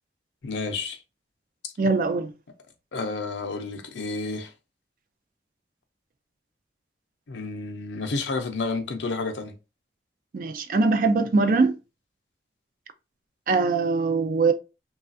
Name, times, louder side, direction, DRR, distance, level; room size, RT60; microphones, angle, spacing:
voice 1, 0.4-1.0 1.6-1.7 2.9-4.5 7.3-9.5, left 3 dB, 75° left, 0.6 m, -30 dB
voice 2, 1.8-2.3 10.3-11.7 13.5-14.5, right 4 dB, 50° right, 0.4 m, -22 dB
3.1 x 2.3 x 2.5 m
head